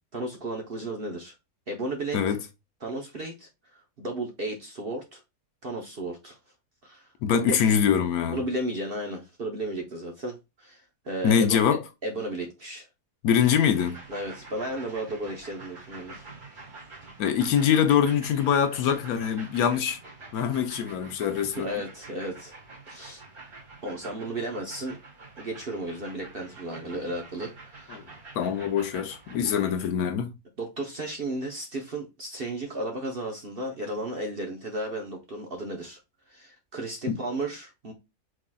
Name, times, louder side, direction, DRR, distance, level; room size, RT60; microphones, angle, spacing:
voice 1, 0.1-1.3 1.7-2.2 2.8-5.2 5.6-6.4 6.8-7.6 8.3-12.9 14.1-16.3 21.5-22.5 22.9-23.2 23.8-25.0 25.4-28.0 30.6-36.0 36.3-37.9, right 1 dB, 45° right, 0.8 m, -34 dB
voice 2, 7.2-8.4 11.2-11.8 13.2-14.0 17.2-20.0 20.3-21.7 27.9-28.0 28.4-30.3 37.1-37.2, left 8 dB, 70° left, 1.0 m, -24 dB
sound 1, 13.4-29.9, right 3 dB, 65° right, 2.6 m, -47 dB
4.8 x 3.8 x 2.2 m
omnidirectional pair, 1.7 m